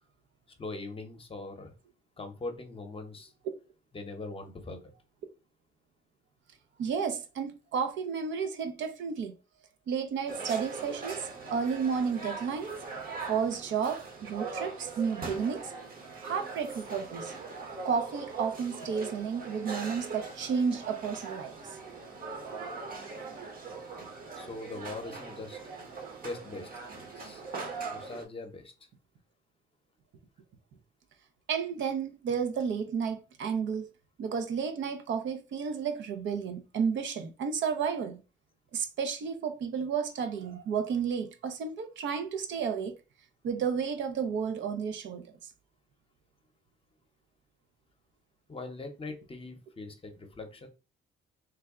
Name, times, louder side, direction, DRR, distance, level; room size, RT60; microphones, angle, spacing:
voice 1, 0.6-1.7 2.2-3.3 3.9-4.8 24.3-25.6 26.2-27.4 27.9-28.7 48.5-50.7, left 2 dB, 30° left, 0.8 m, -41 dB
voice 2, 6.8-9.3 9.9-12.7 13.3-15.7 16.2-17.3 17.8-21.5 31.5-33.9 34.2-38.2 38.7-42.9 43.4-45.3, right 6 dB, 70° right, 0.6 m, -32 dB
sound 1, 10.3-28.2, right 4 dB, 45° right, 1.0 m, -41 dB
3.3 x 2.2 x 3.5 m
cardioid pair, 90°, 20 cm